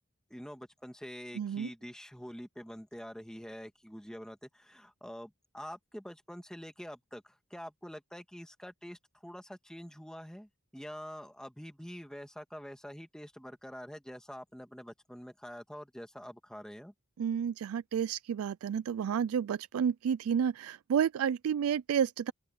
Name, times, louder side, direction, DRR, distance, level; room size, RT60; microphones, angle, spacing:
voice 1, 0.3-16.9, equal, 5° left, 2.0 m, -46 dB
voice 2, 1.4-1.7 17.2-22.3, right 8 dB, 85° right, 0.3 m, -30 dB
open air
head